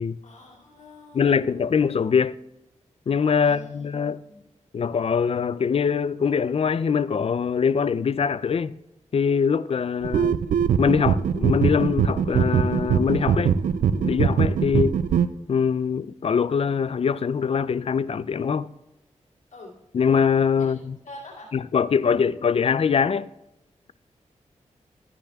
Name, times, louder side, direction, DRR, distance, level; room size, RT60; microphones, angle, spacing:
voice 1, 0.2-1.7 3.4-4.4 19.5-19.8 20.6-21.5, left 1 dB, 70° left, 2.4 m, -46 dB
voice 2, 1.1-2.4 3.1-4.2 4.7-8.7 9.1-10.4 10.8-13.5 13.9-15.0 15.5-18.7 19.9-21.0 21.5-23.3, left 6 dB, 50° left, 0.4 m, -23 dB
sound 1, 10.0-15.3, right 7 dB, 85° right, 0.4 m, -22 dB
13.0 x 9.8 x 2.3 m
cardioid pair, 55°, 13 cm